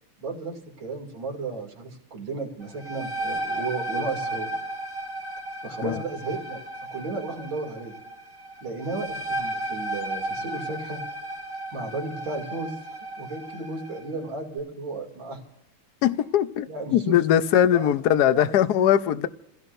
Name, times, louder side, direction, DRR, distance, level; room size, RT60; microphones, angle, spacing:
voice 1, 0.2-4.5 5.6-6.6 6.9-8.0 8.6-11.0 11.7-12.8 13.2-15.4 16.7-17.2 17.7-17.9 18.3-18.9, right 3 dB, 70° right, 3.4 m, -34 dB
sound 1, 2.6-14.1, right 1 dB, 35° right, 2.0 m, -34 dB
voice 2, 16.0-19.3, left 10 dB, 60° left, 1.2 m, -21 dB
29.0 x 16.5 x 2.6 m
omnidirectional pair, 2.2 m